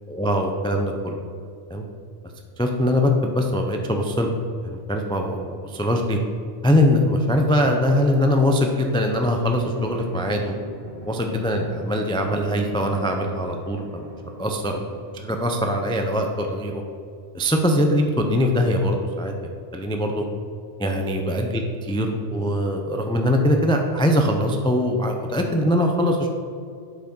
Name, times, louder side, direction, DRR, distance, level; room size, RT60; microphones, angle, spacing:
voice 1, 0.1-1.2 1.7-1.8 2.6-4.3 4.6-6.2 6.6-10.5 11.1-14.1 14.4-16.8 17.3-20.2 20.8-26.3, left 1 dB, 5° left, 3 dB, 0.3 m, -22 dB
sound 1, 9.2-17.4, right 1 dB, 15° right, 1.9 m, -42 dB
7.7 x 4.7 x 5.4 m, 2.3 s
omnidirectional pair, 1.1 m